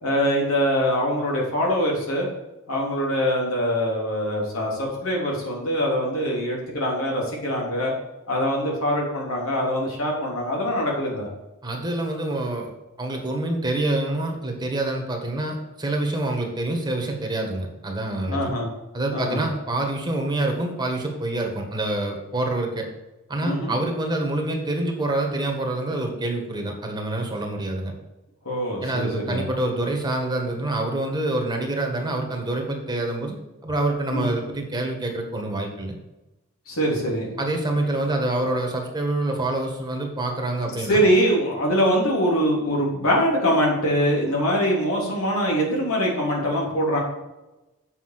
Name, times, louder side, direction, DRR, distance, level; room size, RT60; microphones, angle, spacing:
voice 1, 0.0-2.3 2.7-7.9 8.3-11.3 18.3-18.7 19.1-19.4 23.4-23.8 28.5-29.5 34.1-34.3 36.7-37.4 40.8-47.0, equal, 85° left, -2 dB, 3.3 m, -23 dB
voice 2, 11.6-12.7 13.0-18.5 18.9-22.9 23.3-27.9 28.8-33.4 33.6-35.9 37.4-41.0, right 2 dB, 20° right, 1 dB, 1.6 m, -26 dB
7.8 x 5.4 x 6.7 m, 1.0 s
head